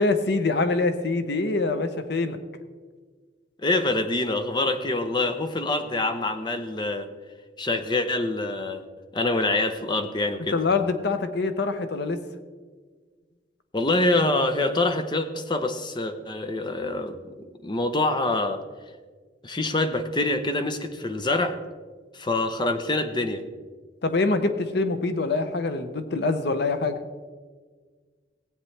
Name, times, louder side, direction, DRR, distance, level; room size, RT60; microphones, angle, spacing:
voice 1, 0.0-2.4 10.5-12.2 24.0-27.0, left 3 dB, 65° left, 9 dB, 0.7 m, -24 dB
voice 2, 3.6-7.1 7.6-8.8 9.1-10.6 13.7-17.2 17.6-18.6 19.4-21.6 22.1-23.4, left 2 dB, 25° left, 8 dB, 0.7 m, -25 dB
16.0 x 8.7 x 3.3 m, 1.5 s
head